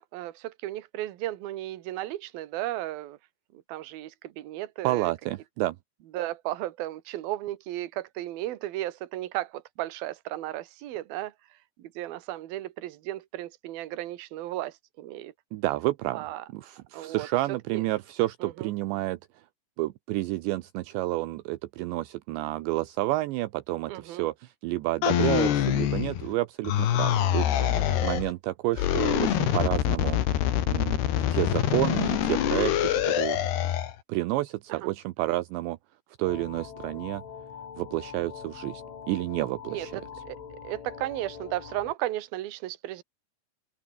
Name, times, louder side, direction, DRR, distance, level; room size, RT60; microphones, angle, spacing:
voice 1, 0.0-3.2 3.7-5.1 6.1-11.3 11.8-15.3 16.1-16.4 16.9-17.3 17.7-17.8 18.4-18.7 23.9-24.3 27.6-28.1 34.7-34.9 39.7-39.9 40.3-43.0, right 15 dB, 60° right, 3.0 m, -35 dB
voice 2, 4.8-5.8 15.5-16.3 16.5-19.2 19.8-27.5 28.0-30.2 30.7-31.0 31.3-33.4 34.1-35.8 36.2-37.2 37.8-40.0, right 18 dB, 75° right, 3.0 m, -30 dB
sound 1, 25.0-26.3 26.7-28.3 28.7-33.9, left 11 dB, 65° left, 3.9 m, -25 dB
sound 2, 36.2-41.9, left 7 dB, 90° left, 7.0 m, -43 dB
omnidirectional pair, 5.4 m